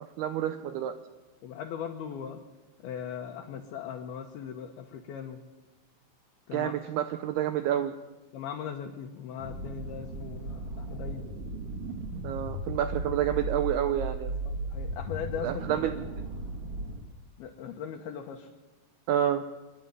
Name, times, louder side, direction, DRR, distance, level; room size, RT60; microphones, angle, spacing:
voice 1, 0.2-0.9 6.5-7.9 12.2-14.3 15.4-15.9 16.2-16.3 19.1-19.4, right 11 dB, 75° right, 8 dB, 2.5 m, -29 dB
voice 2, 1.4-2.4 2.8-5.4 6.5-6.8 8.3-11.3 14.5-15.6 17.4-18.5, left 8 dB, 70° left, 3 dB, 2.8 m, -39 dB
sound 1, 9.4-17.0, right 1 dB, 40° right, 2.4 m, -36 dB
26.0 x 11.5 x 9.6 m, 1.1 s
omnidirectional pair, 5.3 m